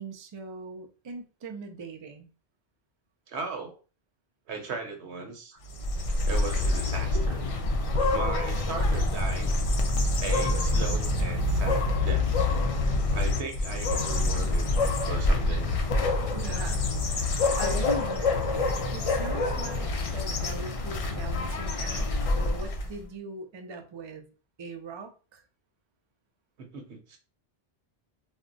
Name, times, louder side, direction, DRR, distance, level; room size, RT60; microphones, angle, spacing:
voice 1, 0.0-2.3 16.3-24.3 24.6-25.4, right 3 dB, 50° right, 4 dB, 0.3 m, -42 dB
voice 2, 3.3-3.8 4.5-5.6 6.2-7.4 8.1-9.6 10.2-12.3 13.1-14.7 15.0-15.7 26.6-27.2, right 4 dB, 80° right, 3 dB, 1.0 m, -37 dB
sound 1, 5.7-23.0, left 2 dB, 55° left, 0.3 m, -26 dB
2.3 x 2.1 x 3.7 m, 0.35 s
omnidirectional pair, 1.1 m